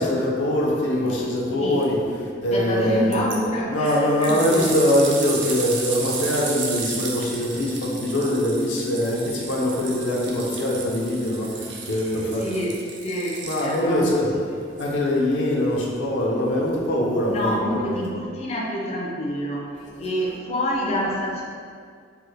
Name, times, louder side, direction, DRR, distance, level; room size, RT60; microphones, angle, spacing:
voice 1, 0.0-2.0 2.4-3.1 3.7-11.5 11.9-12.4 13.4-14.3 14.8-18.0, left 1 dB, 85° left, -3 dB, 0.6 m, -23 dB
voice 2, 2.5-4.8 12.2-14.3 17.3-19.7 20.0-21.4, equal, 35° left, -3 dB, 0.4 m, -27 dB
sound 1, 3.1-3.4 3.8-14.0 14.8-14.9, right 5 dB, 65° right, 0.4 m, -33 dB
3.3 x 2.1 x 3.1 m, 2.1 s
head